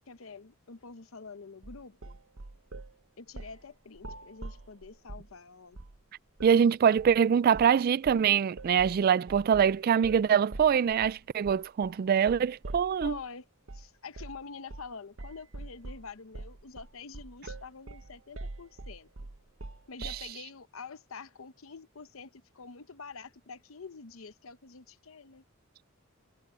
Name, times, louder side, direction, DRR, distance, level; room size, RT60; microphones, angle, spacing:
voice 1, 0.1-2.2 3.2-5.8 13.0-13.4 13.7-19.1 19.9-25.4, left 5 dB, 85° left, 0.8 m, -46 dB
sound 1, 1.6-2.9 3.3-3.6 3.9-5.3 5.7-6.0 6.4-6.6 7.0-7.2 7.5-7.8 8.0-13.3 13.7-13.9 14.1-14.4 14.7-14.9 15.2-20.3, right 2 dB, 70° right, 0.9 m, -44 dB
voice 2, 6.4-13.2 20.0-20.2, right 7 dB, 45° right, 0.3 m, -24 dB
head